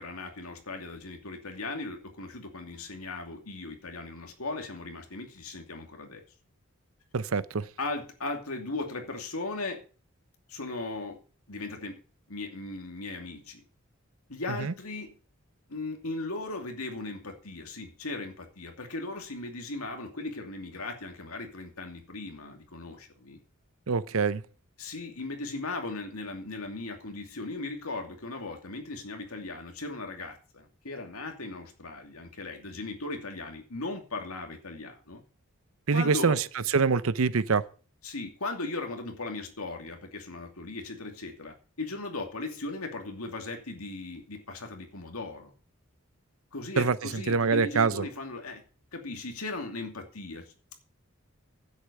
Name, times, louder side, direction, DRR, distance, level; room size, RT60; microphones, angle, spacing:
voice 1, 0.0-6.2 7.8-9.8 10.5-11.2 11.5-12.0 12.3-13.6 14.3-15.2 15.7-23.4 24.8-35.2 35.9-36.4 38.0-45.5 46.5-48.6 48.9-50.4, left 2 dB, 90° left, 2.6 m, -37 dB
voice 2, 7.1-7.6 14.6-14.7 23.9-24.4 35.9-36.4 36.7-37.6 46.8-46.9 47.3-48.0, right 4 dB, 75° right, 0.7 m, -24 dB
10.0 x 8.1 x 6.8 m
head